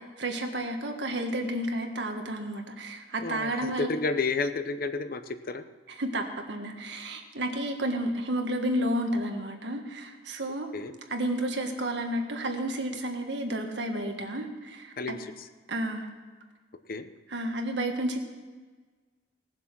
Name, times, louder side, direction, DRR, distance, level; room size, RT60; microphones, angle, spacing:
voice 1, 0.2-3.9 5.9-10.7 11.1-15.2 15.7-16.1 17.3-18.2, right 1 dB, 75° right, 4 dB, 1.6 m, -31 dB
voice 2, 3.8-5.6 10.7-10.9 15.0-15.5 16.9-17.1, left 4 dB, 55° left, 10 dB, 0.7 m, -31 dB
18.0 x 7.5 x 6.0 m, 1.4 s
head